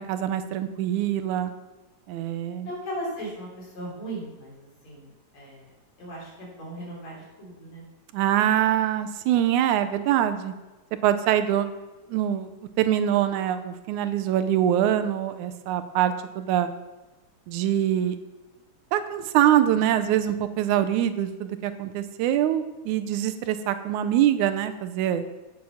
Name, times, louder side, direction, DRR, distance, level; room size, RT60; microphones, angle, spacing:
voice 1, 0.0-1.5 2.1-2.7 8.1-10.5 11.0-11.7 12.1-12.5 12.8-16.7 17.5-18.2 18.9-25.2, right 11 dB, 90° right, 10 dB, 2.1 m, -24 dB
voice 2, 2.6-5.7 6.0-7.8, right 1 dB, 65° left, -4 dB, 4.5 m, -37 dB
8.7 x 7.6 x 5.7 m, 1.1 s
omnidirectional pair, 3.4 m